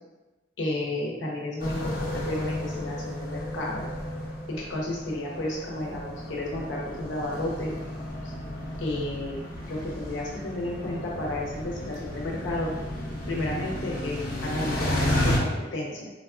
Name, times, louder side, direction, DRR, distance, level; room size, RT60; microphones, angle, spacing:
voice 1, 0.6-3.9 4.5-7.7 8.8-9.4 9.7-12.7 13.3-16.1, left 1 dB, 85° left, -3 dB, 0.8 m, -32 dB
sound 1, 1.6-15.4, left 1 dB, 45° left, 0.7 m, -32 dB
3.8 x 2.3 x 2.4 m, 1.1 s
head